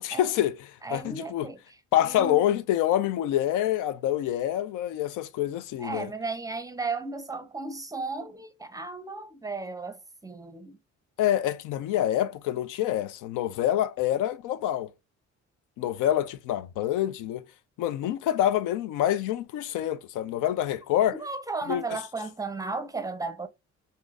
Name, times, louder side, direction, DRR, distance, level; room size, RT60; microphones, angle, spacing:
voice 1, 0.0-1.5 1.9-6.1 11.2-14.9 15.8-17.4 17.8-21.2 21.7-21.8, left 12 dB, 85° left, 0.5 m, -26 dB
voice 2, 0.8-1.6 2.0-2.4 5.8-10.8 21.1-23.5, right 3 dB, 10° right, 0.5 m, -35 dB
3.7 x 2.7 x 2.3 m
cardioid pair, 90°, 30 cm